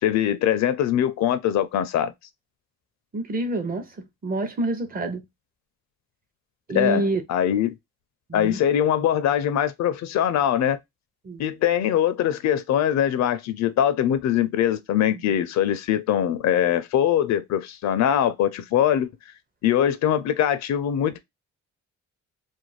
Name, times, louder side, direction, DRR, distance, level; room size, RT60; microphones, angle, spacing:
voice 1, 0.0-2.1 6.7-7.8 8.3-10.8 11.4-19.1 19.6-21.2, left 10 dB, 65° left, 0.4 m, -22 dB
voice 2, 3.1-5.2 6.7-7.2 8.3-8.6 11.2-11.5 15.1-15.2, right 2 dB, 30° right, 0.7 m, -27 dB
2.5 x 2.1 x 3.1 m
cardioid pair, 90°, 30 cm